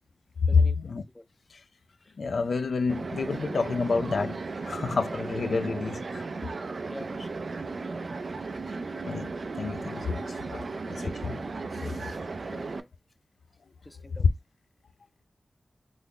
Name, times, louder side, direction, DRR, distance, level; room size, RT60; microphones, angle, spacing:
voice 1, 0.4-1.0 1.5-1.6 2.2-6.2 9.0-11.4 12.1-12.2, left 4 dB, 80° left, 0.4 m, -29 dB
sound 1, 2.9-12.8, right 3 dB, 70° right, 0.4 m, -35 dB
voice 2, 6.9-7.4 7.9-8.1 10.6-10.7 11.7-12.9 13.8-14.3, left 1 dB, 15° left, 0.5 m, -46 dB
3.3 x 2.0 x 3.6 m
cardioid pair, 40°, 0 cm